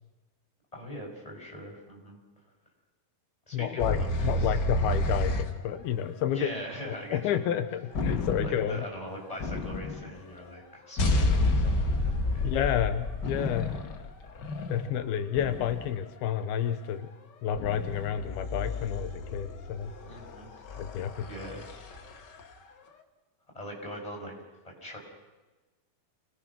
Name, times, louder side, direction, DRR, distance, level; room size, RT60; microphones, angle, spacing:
voice 1, 0.7-2.2 3.5-4.5 4.8-5.0 6.3-7.4 8.4-12.6 20.1-20.5 21.2-21.7 23.5-24.3 24.6-25.0, equal, 10° left, 0 dB, 6.3 m, -41 dB
voice 2, 3.5-6.5 6.8-8.8 12.4-13.8 14.7-17.1 17.4-19.9 20.8-21.3, left 9 dB, 85° left, 10 dB, 2.9 m, -30 dB
sound 1, 3.8-5.6 7.9-8.8 9.4-10.2 11.0-16.1 17.5-22.4, left 2 dB, 55° left, 1.2 m, -30 dB
29.0 x 20.5 x 6.2 m, 1.2 s
omnidirectional pair, 4.3 m